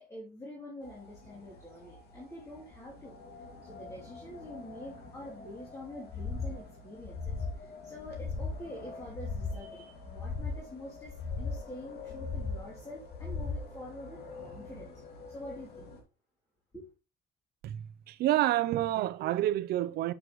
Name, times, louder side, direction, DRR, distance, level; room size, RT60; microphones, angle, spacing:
voice 1, 0.0-14.9 15.3-15.9 16.7-16.9, left 1 dB, 15° left, 2.9 m, -46 dB
sound 1, 0.8-16.0, left 3 dB, 65° left, 2.2 m, -49 dB
sound 2, 6.1-6.6 7.0-7.6 8.0-8.6 9.0-9.6 10.0-10.6 11.0-11.6 12.0-12.6 13.1-13.7, left 4 dB, 35° left, 0.8 m, -36 dB
voice 2, 17.6-20.1, right 14 dB, 70° right, 0.5 m, -29 dB
8.1 x 6.3 x 3.0 m
cardioid pair, 110°, 17 cm